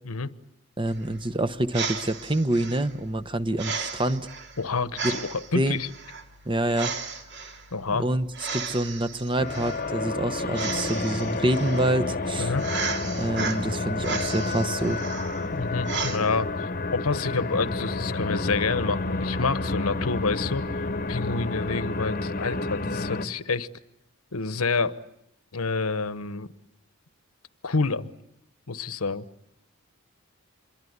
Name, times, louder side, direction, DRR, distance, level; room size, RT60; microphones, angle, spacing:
voice 1, 0.8-4.3 5.0-5.1 5.5-5.8 6.4-6.9 7.9-8.3 8.5-12.5 13.2-15.0, right 1 dB, 20° right, 1.0 m, -26 dB
sound 1, 0.9-16.2, right 4 dB, 50° right, 2.8 m, -35 dB
voice 2, 4.6-5.9 7.7-8.1 12.4-12.7 15.5-20.6 21.1-23.7 24.3-25.0 25.5-26.5 27.6-28.1 28.7-29.2, left 4 dB, 85° left, 1.1 m, -28 dB
sound 2, 9.4-23.3, left 3 dB, 40° left, 1.1 m, -30 dB
26.5 x 22.5 x 9.6 m
head